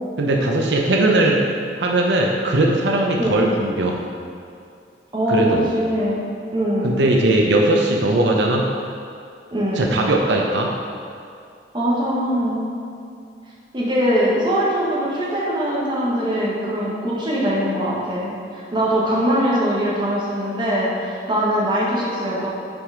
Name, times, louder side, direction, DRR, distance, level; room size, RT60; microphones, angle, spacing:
voice 1, 0.2-1.4 1.8-4.0 5.3-5.6 6.8-8.7 9.7-10.7, right 2 dB, 85° right, 0 dB, 0.6 m, -19 dB
voice 2, 5.1-6.2 6.5-6.9 9.5-9.8 11.7-12.7 13.7-22.5, equal, 25° right, -6 dB, 1.5 m, -22 dB
5.9 x 4.9 x 5.0 m, 2.5 s
head